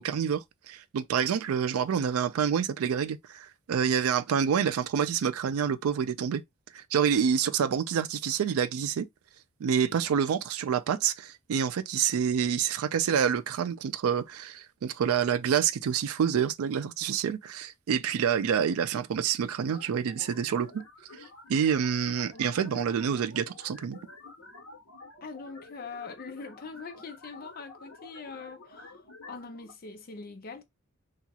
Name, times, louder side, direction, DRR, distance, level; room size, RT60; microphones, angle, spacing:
voice 1, 0.0-6.4 6.7-9.1 9.6-20.8 21.1-21.2 21.5-24.0, right 7 dB, 80° right, 0.4 m, -27 dB
sound 1, 19.7-29.7, left 2 dB, 70° left, 1.0 m, -50 dB
voice 2, 22.3-23.2 25.2-29.0 29.3-30.6, left 4 dB, 45° left, 0.5 m, -43 dB
2.8 x 2.3 x 2.8 m
head